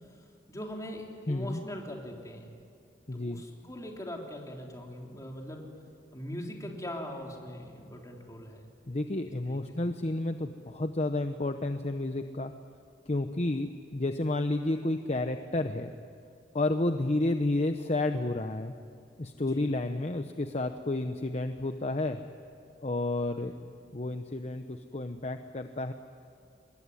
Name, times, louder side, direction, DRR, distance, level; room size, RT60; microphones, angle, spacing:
voice 1, 0.5-2.5 3.1-5.7 6.1-8.7 9.5-9.6 19.4-19.7 23.4-23.6, left 1 dB, 20° left, 0 dB, 3.4 m, -41 dB
voice 2, 1.3-1.6 3.1-3.4 8.9-12.5 13.1-15.9 16.5-18.7 19.2-22.2 22.8-23.6 23.9-25.9, left 2 dB, 40° left, 7 dB, 0.8 m, -31 dB
25.5 x 21.0 x 9.9 m, 2.3 s
head